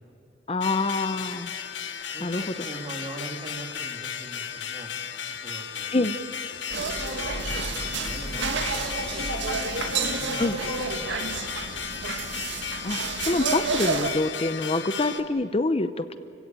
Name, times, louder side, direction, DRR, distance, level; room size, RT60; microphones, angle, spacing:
voice 1, 0.5-1.5 2.2-2.4 5.9-6.2 10.4-10.6 12.8-16.2, left 2 dB, 30° left, 12 dB, 0.7 m, -26 dB
sound 1, 0.6-15.2, left 8 dB, 70° left, 1.4 m, -35 dB
voice 2, 2.1-4.9 5.4-6.0 6.9-9.2 9.5-11.9, right 1 dB, 30° right, 3 dB, 2.6 m, -43 dB
sound 2, 6.7-14.1, right 4 dB, 70° right, 2.0 m, -30 dB
sound 3, 7.4-11.5, left 1 dB, 5° left, 2.2 m, -48 dB
29.5 x 16.5 x 9.0 m, 2.7 s
head